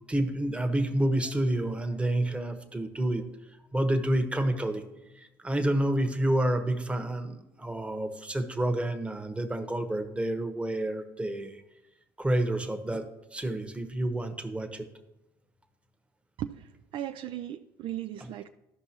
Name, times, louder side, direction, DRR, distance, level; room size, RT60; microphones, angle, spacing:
voice 1, 0.1-3.3 3.7-4.8 5.1-11.6 12.2-13.1 13.3-14.9, right 1 dB, 10° right, 6 dB, 1.0 m, -29 dB
voice 2, 16.4-18.5, right 11 dB, 60° right, 9 dB, 0.4 m, -37 dB
13.0 x 5.3 x 3.0 m, 0.94 s
supercardioid pair, 75°, 10 cm